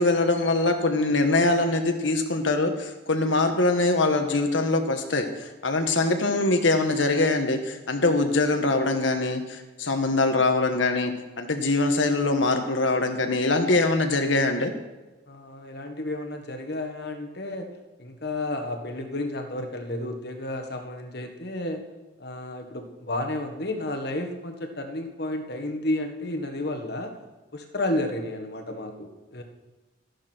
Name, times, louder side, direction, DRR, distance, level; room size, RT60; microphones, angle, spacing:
voice 1, 0.0-14.7, left 2 dB, 75° left, 5 dB, 1.5 m, -23 dB
voice 2, 15.3-17.7 18.0-21.8 22.2-27.1 27.5-29.4, left 1 dB, 55° left, 5 dB, 1.5 m, -32 dB
13.5 x 12.0 x 4.6 m, 1.2 s
head